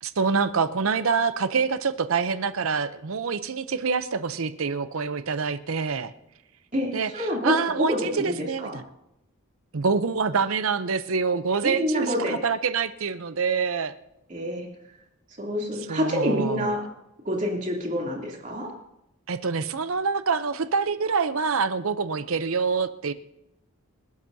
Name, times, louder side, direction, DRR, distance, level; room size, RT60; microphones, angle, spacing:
voice 1, 0.0-6.1 6.9-8.8 9.7-12.1 12.4-13.9 15.9-16.7 19.3-23.1, right 5 dB, 75° right, 12 dB, 0.7 m, -26 dB
voice 2, 6.7-8.8 11.6-12.4 14.3-14.7 15.4-16.8 17.2-18.7, left 1 dB, 35° right, -1 dB, 3.0 m, -27 dB
28.0 x 12.0 x 2.8 m, 0.84 s
head